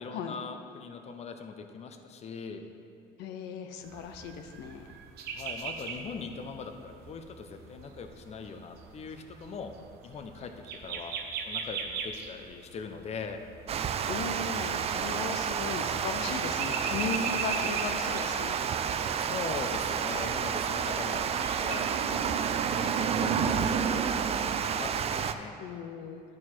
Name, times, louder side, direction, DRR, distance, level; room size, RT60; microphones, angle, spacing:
voice 1, 0.0-2.7 5.3-9.7 10.0-10.5 10.8-11.1 11.4-13.4 19.2-21.3 21.6-24.1 24.4-25.5, left 5 dB, 40° left, 7 dB, 0.6 m, -41 dB
voice 2, 3.2-4.8 14.1-18.6 25.6-26.2, left 5 dB, 85° left, 6 dB, 0.5 m, -37 dB
sound 1, 3.8-21.8, right 6 dB, 75° right, 0.8 m, -41 dB
Water, 13.7-25.3, right 7 dB, 35° right, 0.4 m, -30 dB
11.0 x 4.5 x 4.3 m, 2.4 s
cardioid pair, 110°, 17 cm